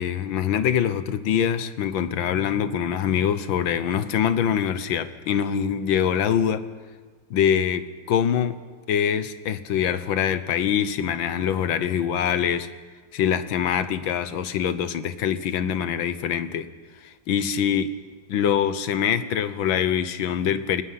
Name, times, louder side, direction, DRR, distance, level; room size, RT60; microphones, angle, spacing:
voice 1, 0.0-6.6 7.3-8.6 8.9-12.7 13.1-16.7 17.0-17.9 18.3-20.8, left 8 dB, 80° left, 12 dB, 1.8 m, -24 dB
29.0 x 19.0 x 5.8 m, 1.5 s
omnidirectional pair, 2.1 m